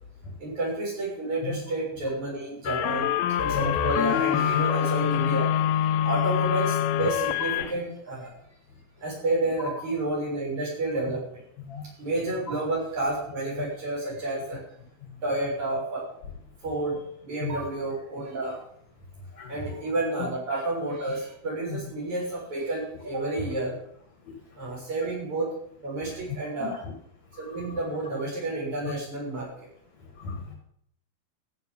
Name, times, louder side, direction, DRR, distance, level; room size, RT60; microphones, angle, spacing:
voice 1, 0.4-3.1 3.4-8.3 9.0-11.4 12.0-14.6 15.2-16.1 16.6-18.6 19.4-23.8 24.6-25.5 25.8-26.8 27.4-29.5, right 2 dB, 50° right, -5 dB, 8.1 m, -30 dB
sound 1, 2.7-7.7, left 10 dB, 80° left, 2.6 m, -25 dB
voice 2, 19.4-19.7 20.2-20.3 21.7-21.8 26.6-26.8 30.2-30.5, left 6 dB, 55° left, 2 dB, 2.6 m, -33 dB
14.5 x 10.0 x 5.4 m, 0.68 s
omnidirectional pair, 4.3 m